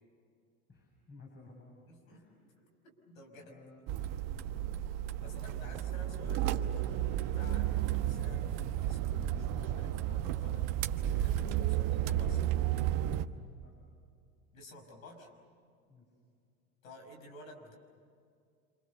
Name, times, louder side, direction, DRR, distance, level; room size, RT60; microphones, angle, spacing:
voice 1, 0.7-1.7 2.1-2.3 3.5-3.8 5.2-5.8 6.1-6.2 13.5-13.7 15.9-16.1, left 3 dB, 25° left, -1 dB, 7.5 m, -55 dB
voice 2, 1.9-2.3 2.6-2.7 3.0-3.6 5.2-12.7 14.5-15.3 16.8-17.8, left 1 dB, 80° left, 4 dB, 5.9 m, -53 dB
sound 1, 3.9-13.3, right 12 dB, 55° right, 1.2 m, -32 dB
28.0 x 27.0 x 6.9 m, 2.3 s
hypercardioid pair, 80°, 40 cm